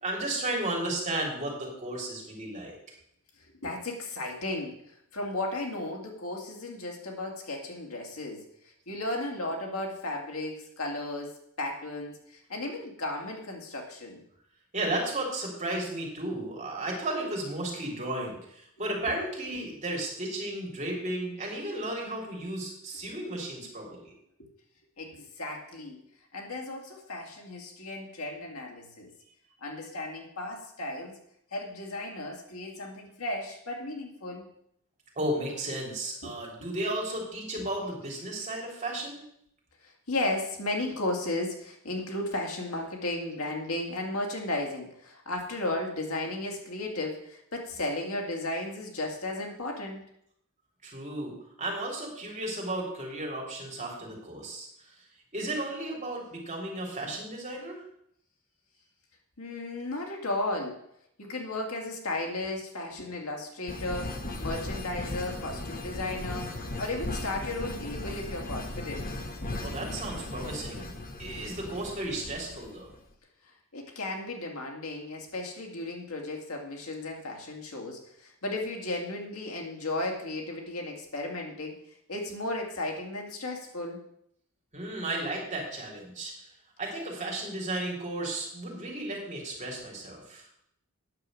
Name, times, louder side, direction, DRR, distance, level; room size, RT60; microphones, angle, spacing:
voice 1, 0.0-2.7 14.7-24.1 35.1-39.2 50.8-51.3 51.6-54.7 55.3-57.8 69.6-70.9 71.2-72.9 84.7-86.3 86.8-90.4, right 1 dB, 35° right, -1 dB, 3.4 m, -34 dB
voice 2, 3.4-4.8 5.1-8.4 8.9-11.3 11.6-14.2 19.5-19.6 24.4-24.5 25.0-26.0 26.3-29.1 29.6-31.2 31.5-34.5 36.2-36.3 37.6-37.7 39.8-50.0 59.4-60.8 61.2-69.1 73.7-81.8 82.1-84.0, left 2 dB, 75° left, 1 dB, 2.4 m, -35 dB
sound 1, 63.7-73.0, left 2 dB, 40° left, 1.3 m, -37 dB
9.5 x 6.9 x 7.6 m, 0.73 s
head